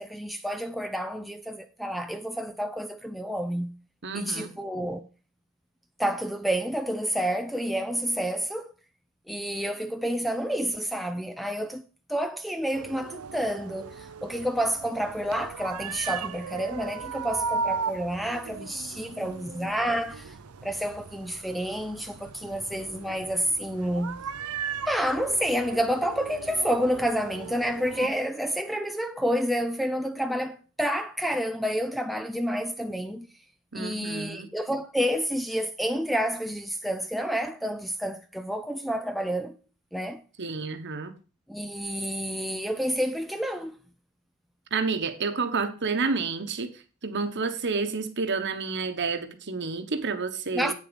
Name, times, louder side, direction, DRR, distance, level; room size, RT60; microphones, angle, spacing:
voice 1, 0.0-3.8 4.1-5.0 6.0-8.7 9.3-11.8 12.1-20.3 20.6-24.2 24.9-33.3 33.7-39.6 39.9-40.2 41.5-43.7 50.5-50.7, equal, ahead, 0.5 m, -29 dB
voice 2, 4.0-4.5 19.2-19.5 33.7-34.5 40.4-41.1 44.7-46.7 47.0-50.7, right 4 dB, 55° right, 1.2 m, -30 dB
sound 1, 12.7-28.1, right 5 dB, 80° right, 0.6 m, -37 dB
8.6 x 7.1 x 5.2 m
head